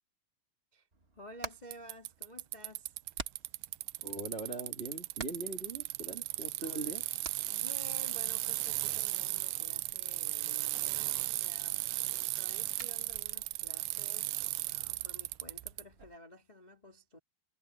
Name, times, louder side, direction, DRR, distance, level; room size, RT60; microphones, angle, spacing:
Hammer, 0.9-16.1, right 3 dB, 45° right, 0.8 m, -52 dB
voice 1, 1.1-3.0 6.6-7.1 7.5-17.2, left 1 dB, 15° left, 1.7 m, -53 dB
Bicycle, 1.7-15.8, right 20 dB, 85° right, 1.9 m, -36 dB
voice 2, 4.0-7.0, right 2 dB, 20° right, 2.3 m, -41 dB
omnidirectional pair, 4.2 m